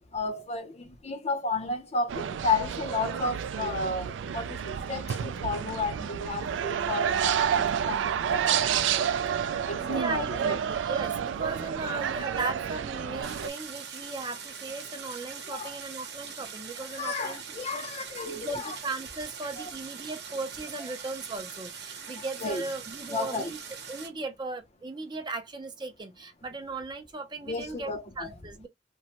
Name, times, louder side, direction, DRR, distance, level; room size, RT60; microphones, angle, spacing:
voice 1, 0.1-9.1 9.6-10.6 15.5-15.8 16.8-18.8 19.6-19.7 22.0-22.6 23.1-23.5 27.5-28.3, left 3 dB, 35° left, 0.6 m, -33 dB
sound 1, 2.1-13.5, right 8 dB, 85° right, 0.3 m, -29 dB
voice 2, 9.8-17.4 17.7-17.8 18.3-23.6 23.9-27.9 28.2-28.7, right 3 dB, 25° right, 0.5 m, -37 dB
Stream, 13.2-24.1, right 6 dB, 60° right, 0.9 m, -42 dB
3.0 x 2.1 x 2.8 m
head